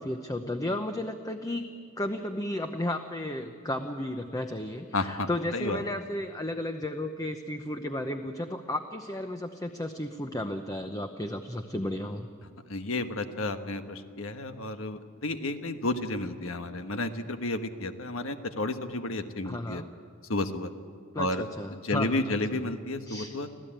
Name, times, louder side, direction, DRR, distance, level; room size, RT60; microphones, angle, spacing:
voice 1, 0.0-1.6 2.0-12.3 19.4-19.9 21.1-22.6 23.1-23.4, left 1 dB, 15° left, 6 dB, 0.8 m, -33 dB
voice 2, 4.9-5.8 12.7-19.8 20.3-20.7 21.2-21.5 21.7-23.5, left 2 dB, 80° left, 8 dB, 1.4 m, -32 dB
26.0 x 15.5 x 8.9 m, 2.1 s
head